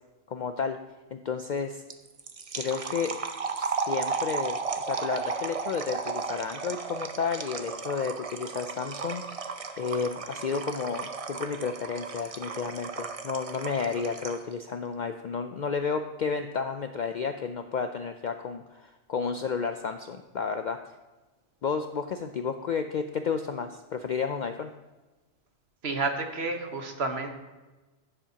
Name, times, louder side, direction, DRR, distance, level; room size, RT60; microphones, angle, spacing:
voice 1, 0.3-0.8 1.1-1.8 2.5-3.2 3.6-20.8 21.6-24.7, left 5 dB, 60° left, 7 dB, 0.4 m, -32 dB
sound 1, 1.9-14.5, right 5 dB, 40° right, 0.6 m, -34 dB
voice 2, 25.8-27.3, right 3 dB, 60° right, 4 dB, 1.4 m, -30 dB
16.0 x 7.5 x 2.8 m, 1.2 s
omnidirectional pair, 1.2 m